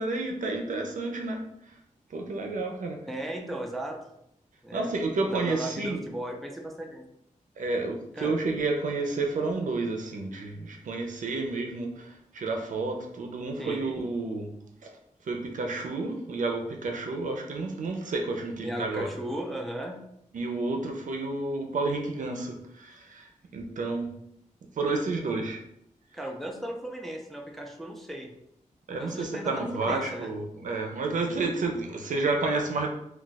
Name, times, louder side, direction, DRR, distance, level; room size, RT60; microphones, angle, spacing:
voice 1, 0.0-1.4 2.1-3.0 4.7-6.0 7.6-14.5 14.8-14.9 15.3-19.1 20.3-24.1 24.8-25.6 28.9-32.9, right 3 dB, 75° right, 3 dB, 0.5 m, -30 dB
voice 2, 3.1-4.0 4.6-5.0 5.3-7.1 8.1-8.3 13.6-13.8 18.6-20.0 26.1-28.3 28.9-30.3, right 1 dB, ahead, 1 dB, 0.4 m, -36 dB
2.3 x 2.3 x 3.9 m, 0.77 s
wide cardioid pair, 155°, 13 cm